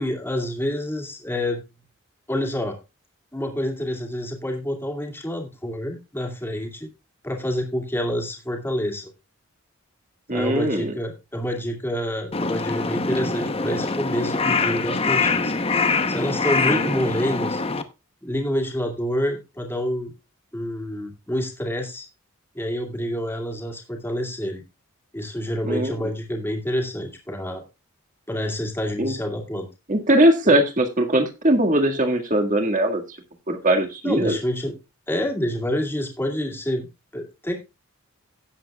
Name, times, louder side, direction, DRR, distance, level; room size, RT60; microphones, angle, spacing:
voice 1, 0.0-1.6 2.3-2.8 3.3-6.9 7.2-9.1 10.3-15.5 15.8-17.6 18.2-20.1 20.5-22.1 22.5-24.6 25.1-27.6 28.3-29.7 30.5-30.6 34.0-34.7 35.1-36.9 37.1-37.6, equal, 10° left, 2 dB, 2.3 m, -27 dB
voice 2, 10.3-10.9 16.7-16.9 25.6-26.0 29.0-29.1 29.9-33.2 33.5-34.4, right 1 dB, 35° right, 4 dB, 1.9 m, -20 dB
Crow, 12.3-17.8, left 4 dB, 25° left, 0.9 m, -24 dB
17.0 x 7.7 x 2.3 m, 0.26 s
head